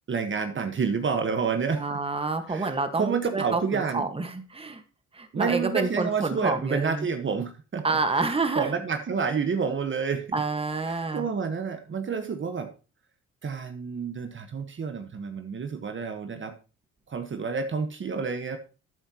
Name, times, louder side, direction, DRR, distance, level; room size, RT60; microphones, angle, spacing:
voice 1, 0.1-2.0 2.5-2.7 3.0-4.1 5.3-10.3 10.9-12.7 13.4-16.5 17.1-18.6, right 5 dB, 40° right, 7 dB, 1.4 m, -29 dB
voice 2, 1.7-4.8 5.1-7.1 7.8-8.8 10.3-11.3, right 3 dB, 20° right, 7 dB, 1.6 m, -28 dB
12.5 x 8.8 x 3.0 m, 0.33 s
cardioid pair, 90°, 30 cm